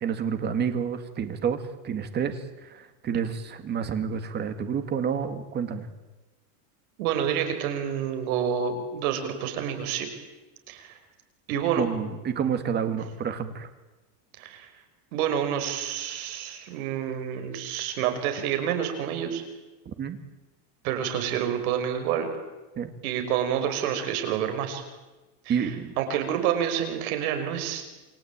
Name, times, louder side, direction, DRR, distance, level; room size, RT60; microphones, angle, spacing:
voice 1, 0.0-1.6 1.8-5.9 11.7-13.7 20.0-20.2 22.8-22.9 25.5-25.9, right 7 dB, 20° right, 9 dB, 2.0 m, -29 dB
voice 2, 7.0-10.1 10.7-11.0 11.5-11.9 14.4-14.7 15.1-19.4 20.8-22.3 23.0-24.8 25.5-27.8, right 9 dB, 65° right, 6 dB, 5.7 m, -28 dB
28.5 x 22.5 x 8.9 m, 1.1 s
supercardioid pair, 170°, 47 cm